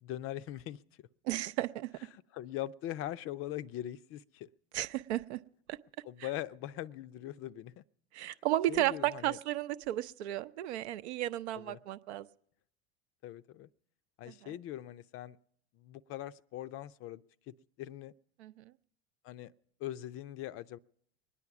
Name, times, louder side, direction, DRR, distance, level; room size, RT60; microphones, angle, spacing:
voice 1, 0.0-0.8 2.1-4.5 6.0-7.8 8.3-8.4 8.7-9.4 11.5-11.8 13.2-13.7 14.2-15.4 15.7-17.2 17.5-18.1 19.2-19.5 19.8-20.8, left 13 dB, 40° left, 0.5 m, -41 dB
voice 2, 1.2-1.9 4.7-5.4 5.7-5.8 8.1-12.3 14.3-14.5 18.4-18.7, right 14 dB, 75° right, 0.6 m, -34 dB
22.0 x 9.9 x 5.9 m
hypercardioid pair, 85°, 34 cm